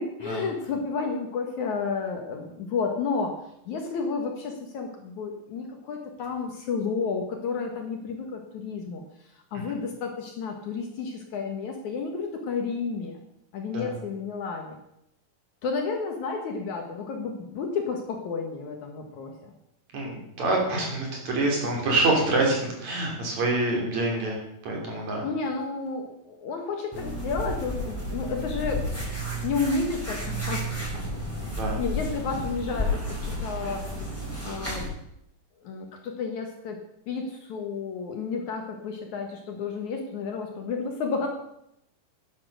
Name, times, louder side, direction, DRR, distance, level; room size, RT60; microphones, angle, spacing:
voice 1, 0.0-3.4 3.7-9.0 9.5-13.2 13.5-14.8 15.6-19.5 25.2-28.9 29.4-30.6 30.9-31.1 31.8-33.0 33.4-33.9 34.4-34.9 35.6-36.8 37.1-41.3, left 4 dB, 60° left, 3 dB, 2.4 m, -31 dB
voice 2, 19.9-24.3 24.7-25.2 31.4-31.8, right 2 dB, 50° right, 0 dB, 4.2 m, -26 dB
sound 1, 26.9-34.9, equal, 5° left, 5.2 m, -32 dB
10.5 x 10.5 x 6.5 m, 0.79 s
omnidirectional pair, 4.3 m